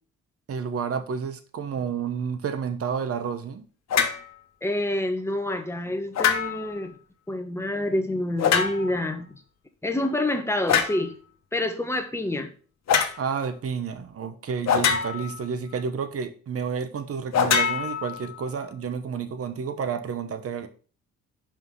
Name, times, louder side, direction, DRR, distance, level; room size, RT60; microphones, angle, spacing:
voice 1, 0.5-3.6 13.2-20.7, right 6 dB, 50° right, 1.1 m, -30 dB
sound 1, 3.9-4.2 6.1-6.8 8.4-9.0 10.7-11.0 12.9-13.2 14.7-15.4 17.3-18.5, left 7 dB, 60° left, 1.2 m, -24 dB
voice 2, 4.6-6.9 7.3-9.3 9.8-11.1 11.5-12.5, left 1 dB, 10° left, 1.2 m, -27 dB
5.6 x 5.1 x 5.4 m
cardioid pair, 90°, 30 cm